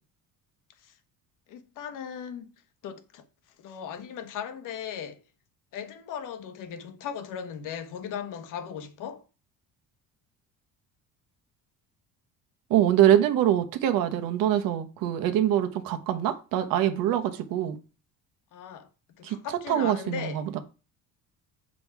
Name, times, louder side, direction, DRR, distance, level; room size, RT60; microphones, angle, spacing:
voice 1, 1.5-2.5 2.8-3.2 3.6-5.2 5.7-9.2 18.5-18.9 19.2-20.5, left 8 dB, 65° left, 1.2 m, -37 dB
voice 2, 12.7-17.8 19.2-19.4 19.7-20.6, right 11 dB, 75° right, 1.2 m, -24 dB
7.3 x 5.3 x 4.7 m
cardioid pair, 150°, 34 cm